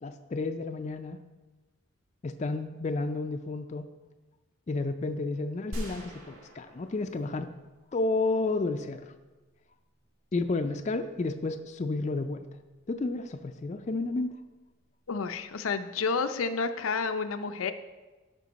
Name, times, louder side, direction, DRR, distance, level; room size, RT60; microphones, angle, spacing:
voice 1, 0.0-1.2 2.2-3.9 4.7-7.5 7.9-9.1 10.3-12.4 12.9-14.4, left 3 dB, 35° left, 7 dB, 0.4 m, -31 dB
sound 1, 5.7-8.0, equal, 90° right, 1.8 m, -41 dB
voice 2, 15.1-17.7, left 4 dB, 85° left, 9 dB, 0.5 m, -30 dB
12.0 x 5.2 x 4.0 m, 1.2 s
head